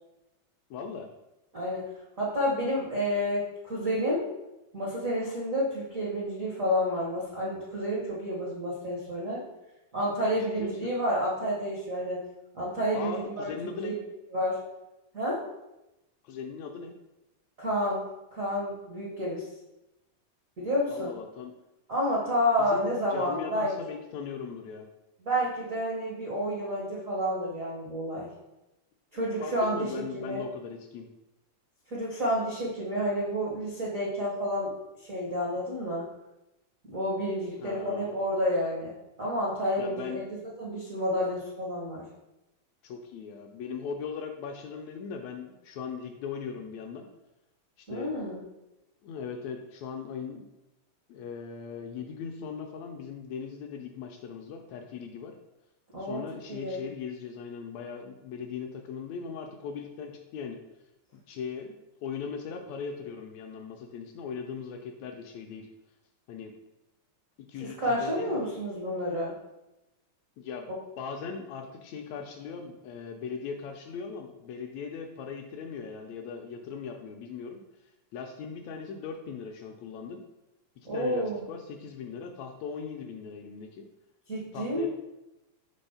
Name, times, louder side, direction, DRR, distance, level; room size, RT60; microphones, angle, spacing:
voice 1, 0.7-1.1 10.6-10.9 12.9-13.9 16.2-16.9 20.9-21.5 22.6-24.9 29.4-31.1 37.6-38.2 39.8-40.2 42.8-47.1 47.8-48.1 49.0-50.5 51.1-55.4 56.0-60.6 61.1-65.7 66.3-66.5 67.5-68.3 70.4-70.7 71.0-77.6 78.1-80.2 80.8-83.9 84.5-84.9, left 6 dB, 80° left, 4 dB, 1.6 m, -39 dB
voice 2, 1.5-1.9 2.2-4.2 4.7-9.4 9.9-12.2 12.5-13.5 13.8-14.0 14.3-14.6 15.1-15.4 17.6-18.0 18.3-19.4 20.6-21.1 21.9-23.7 25.2-28.3 29.1-29.9 30.1-30.4 31.9-34.7 35.1-36.0 36.9-38.9 39.2-40.2 40.6-42.0 47.9-48.4 55.9-56.2 56.5-56.8 67.6-69.3 80.9-81.4 84.3-84.9, equal, 80° right, -5 dB, 0.7 m, -29 dB
5.3 x 3.5 x 5.5 m, 0.94 s
omnidirectional pair, 3.6 m